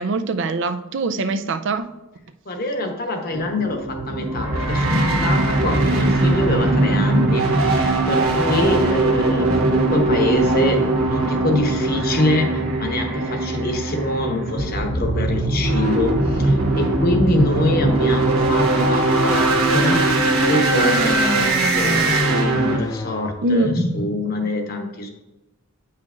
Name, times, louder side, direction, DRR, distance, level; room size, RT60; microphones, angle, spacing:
voice 1, 0.0-1.9 23.4-23.7, right 2 dB, 55° right, 8 dB, 0.4 m, -22 dB
voice 2, 2.5-20.1 20.5-25.1, left 2 dB, 45° left, 4 dB, 0.9 m, -25 dB
sound 1, 3.3-22.8, right 2 dB, 80° right, 1.2 m, -20 dB
sound 2, 17.4-23.3, left 1 dB, 15° left, 0.3 m, -28 dB
8.8 x 5.7 x 2.5 m, 1.0 s
head